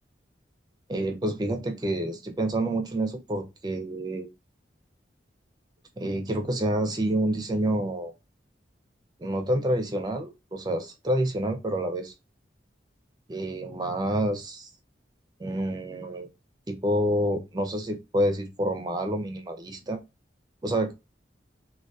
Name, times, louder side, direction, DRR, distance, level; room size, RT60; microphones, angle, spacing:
voice 1, 0.9-4.3 6.0-8.1 9.2-12.1 13.3-14.7 15.4-16.3 16.7-20.0 20.6-20.9, right 1 dB, 25° right, 0.4 m, -28 dB
2.2 x 2.2 x 2.6 m
head